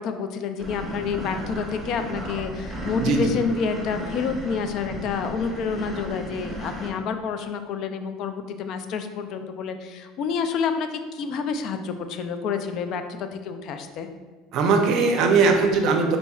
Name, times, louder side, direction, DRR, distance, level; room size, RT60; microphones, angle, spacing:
voice 1, 0.0-14.1, left 5 dB, 50° left, 8 dB, 0.4 m, -29 dB
sound 1, 0.6-6.9, equal, 5° right, 0.8 m, -34 dB
voice 2, 3.0-3.3 14.5-16.2, right 4 dB, 55° right, 4 dB, 0.6 m, -20 dB
4.2 x 4.1 x 2.3 m, 1.4 s
supercardioid pair, 130°, 0 cm